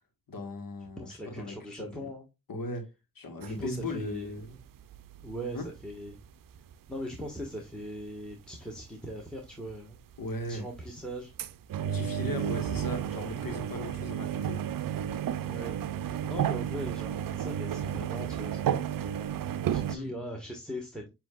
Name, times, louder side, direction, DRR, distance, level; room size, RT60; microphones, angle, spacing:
voice 1, 0.3-2.1 2.5-2.9 3.1-4.6 5.5-5.7 10.2-10.7 11.9-14.6 19.9-20.1, left 1 dB, 80° left, 1.5 m, -38 dB
voice 2, 1.0-2.3 3.4-4.3 5.2-6.2 6.9-10.0 10.5-11.3 15.4-15.7 16.2-18.7 19.7-21.1, equal, ahead, 1.4 m, -40 dB
sound 1, 3.4-3.5 4.3-6.1 6.5-7.1 8.0-8.1 9.1-9.2 9.7-9.8 10.2-11.0 11.4-20.0, right 10 dB, 75° right, 0.5 m, -32 dB
7.3 x 2.8 x 2.4 m
cardioid pair, 45°, 34 cm